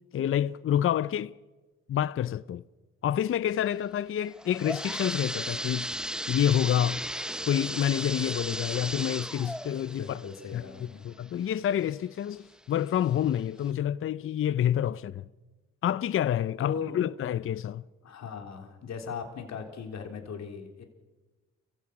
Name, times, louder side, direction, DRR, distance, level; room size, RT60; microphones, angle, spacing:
voice 1, 0.1-1.3 1.9-2.6 3.0-5.9 6.3-7.0 7.5-10.2 10.5-10.6 11.0-15.2 15.8-17.8, left 10 dB, 45° left, 0.5 m, -28 dB
sound 1, 4.2-11.8 12.3-12.4 13.2-13.3 13.7-13.8, equal, 5° right, 0.7 m, -36 dB
voice 2, 10.0-11.1 16.6-17.0 18.0-20.8, left 6 dB, 60° left, 3.5 m, -38 dB
29.0 x 15.5 x 6.1 m
cardioid pair, 90°, 30 cm